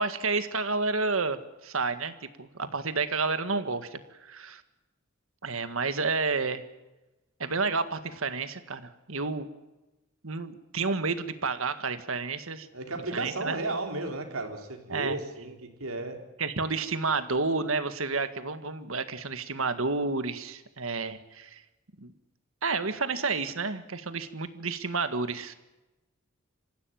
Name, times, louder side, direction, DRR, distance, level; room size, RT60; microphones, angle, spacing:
voice 1, 0.0-4.6 5.4-6.6 7.4-9.5 10.2-12.7 13.1-13.6 14.9-15.2 16.4-21.6 22.0-22.1 22.6-25.5, right 4 dB, 70° right, 10 dB, 1.8 m, -30 dB
voice 2, 12.7-16.2, right 2 dB, 90° right, 3 dB, 4.2 m, -34 dB
26.5 x 15.5 x 9.3 m, 1.0 s
head